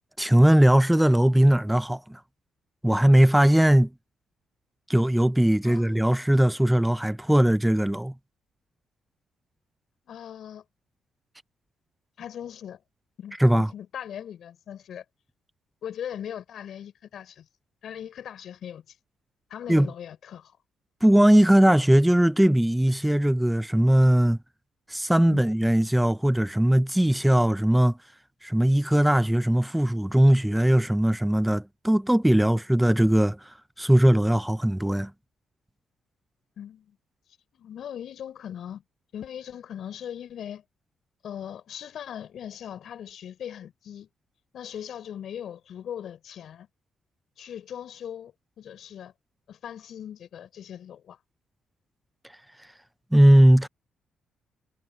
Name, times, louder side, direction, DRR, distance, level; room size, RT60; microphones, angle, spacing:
voice 1, 0.2-2.2 2.8-3.9 4.9-8.1 13.4-13.7 19.7-19.9 21.0-24.4 24.9-28.0 28.4-33.4 33.8-35.1 53.1-53.7, right 1 dB, 5° right, 0.4 m, -19 dB
voice 2, 5.6-6.0 10.1-10.6 12.2-12.8 13.2-15.0 15.8-17.5 17.8-19.0 19.5-20.6 25.3-25.4 36.6-37.0 37.5-38.8 39.1-40.6 41.2-44.1 44.5-46.7 47.4-49.1 49.5-51.2, left 9 dB, 65° left, 5.4 m, -39 dB
cardioid pair, 90°, 0 cm